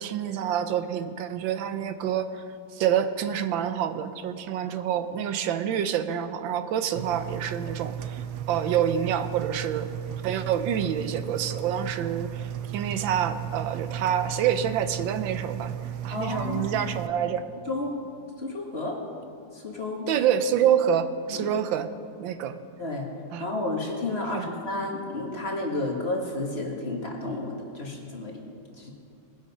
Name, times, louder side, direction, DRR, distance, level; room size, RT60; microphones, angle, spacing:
voice 1, 0.0-2.4 2.7-9.9 10.2-15.7 16.0-17.4 20.1-21.9 22.2-22.6 23.3-23.5 24.3-24.5, right 9 dB, 90° right, 10 dB, 1.5 m, -27 dB
Engine, 7.0-17.1, right 10 dB, 70° right, 1.1 m, -35 dB
voice 2, 16.1-16.8 17.7-17.9 18.4-19.0 19.5-20.1 21.3-21.5 22.8-23.1 23.4-28.4 28.8-28.9, left 2 dB, 35° left, -1 dB, 1.8 m, -31 dB
21.0 x 7.6 x 5.4 m, 2.4 s
omnidirectional pair, 2.0 m